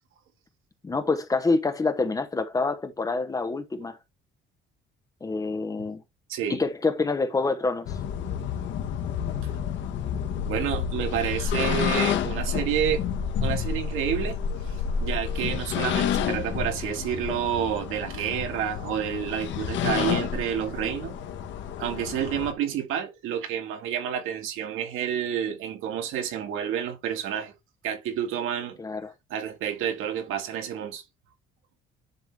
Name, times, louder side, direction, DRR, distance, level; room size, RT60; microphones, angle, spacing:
voice 1, 0.8-4.0 5.2-6.0 6.5-7.9 28.8-29.1, left 3 dB, 15° left, 1.0 m, -26 dB
sound 1, 7.9-22.5, left 7 dB, 60° left, 1.4 m, -29 dB
voice 2, 10.5-13.1 13.4-14.4 14.7-21.2 21.8-27.5 27.8-28.8 29.3-31.0, right 9 dB, 75° right, 2.2 m, -29 dB
10.5 x 3.7 x 3.3 m
cardioid pair, 155°, 21 cm